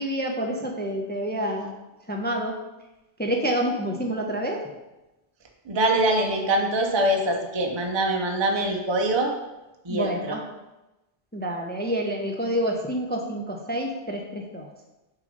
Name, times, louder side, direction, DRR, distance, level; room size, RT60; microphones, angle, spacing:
voice 1, 0.0-1.7 2.1-2.5 3.2-4.6 9.9-10.4 11.3-14.7, equal, 15° left, 1 dB, 0.4 m, -28 dB
voice 2, 5.7-9.3 9.8-10.4, right 1 dB, 30° right, 1 dB, 0.7 m, -24 dB
6.4 x 3.8 x 5.2 m, 1.0 s
omnidirectional pair, 1.2 m